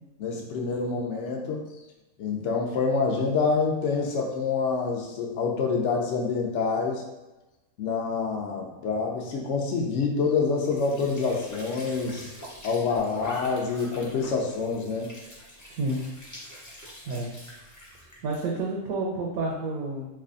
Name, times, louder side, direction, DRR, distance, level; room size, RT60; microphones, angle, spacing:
voice 1, 0.2-1.6 2.2-7.0 7.8-12.3 12.6-15.1, left 4 dB, 60° left, 0 dB, 0.9 m, -27 dB
Squeak / Sink (filling or washing) / Trickle dribble, 10.5-18.5, equal, 25° left, 0.4 m, -44 dB
voice 2, 15.7-16.0 17.0-17.3 18.2-20.1, right 2 dB, 75° right, -2 dB, 1.0 m, -29 dB
3.3 x 2.3 x 3.7 m, 1.0 s
omnidirectional pair, 1.5 m